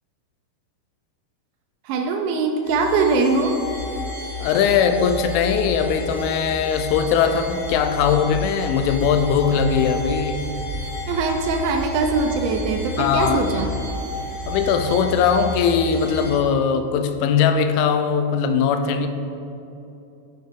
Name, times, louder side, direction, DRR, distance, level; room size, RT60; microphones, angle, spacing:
voice 1, 1.9-3.6 11.1-13.7, right 4 dB, 85° right, 4 dB, 2.9 m, -22 dB
sound 1, 2.7-16.4, left 1 dB, 70° left, 3.6 m, -31 dB
voice 2, 4.4-10.4 13.0-13.4 14.5-19.1, left 7 dB, 90° left, 7 dB, 3.0 m, -20 dB
7.5 x 7.1 x 3.6 m, 2.8 s
omnidirectional pair, 5.3 m